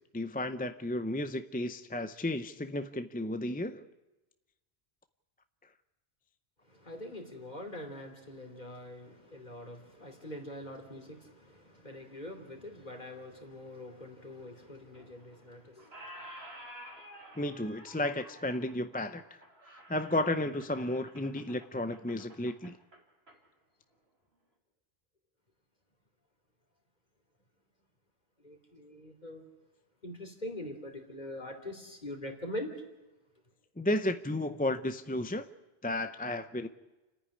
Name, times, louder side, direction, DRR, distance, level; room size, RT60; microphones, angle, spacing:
voice 1, 0.1-3.9 17.4-19.4 19.9-22.8 33.8-35.5 35.8-36.7, left 1 dB, 10° left, 10 dB, 0.5 m, -33 dB
voice 2, 6.7-15.9 28.4-29.4 30.0-32.8, left 1 dB, 45° left, 4 dB, 3.2 m, -43 dB
Squeak, 14.9-15.5 15.8-23.4, equal, 80° right, 3.2 m, -51 dB
29.5 x 10.0 x 9.8 m, 1.1 s
omnidirectional pair, 1.0 m